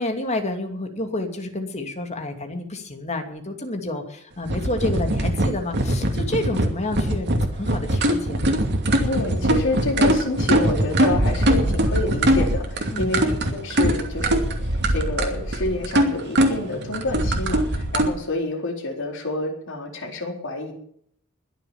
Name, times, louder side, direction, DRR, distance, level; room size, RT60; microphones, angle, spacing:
voice 1, 0.0-8.7 12.9-13.3, left 2 dB, 30° left, 4 dB, 2.7 m, -29 dB
sound 1, 4.4-18.1, right 1 dB, 55° right, 2.6 m, -22 dB
voice 2, 9.0-20.7, left 2 dB, 60° left, 1 dB, 4.5 m, -28 dB
22.0 x 7.3 x 7.3 m, 0.66 s
head